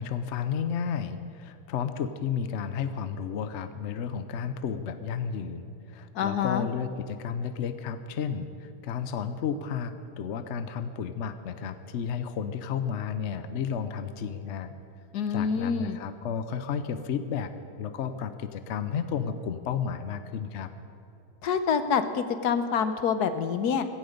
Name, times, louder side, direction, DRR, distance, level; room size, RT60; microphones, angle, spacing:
voice 1, 0.0-14.7 15.3-17.5 17.8-20.7, left 7 dB, 55° left, 10 dB, 0.9 m, -32 dB
voice 2, 6.1-6.7 15.1-16.0 21.4-23.9, left 6 dB, 70° left, 10 dB, 1.3 m, -26 dB
16.5 x 16.0 x 5.2 m, 2.8 s
omnidirectional pair, 1.8 m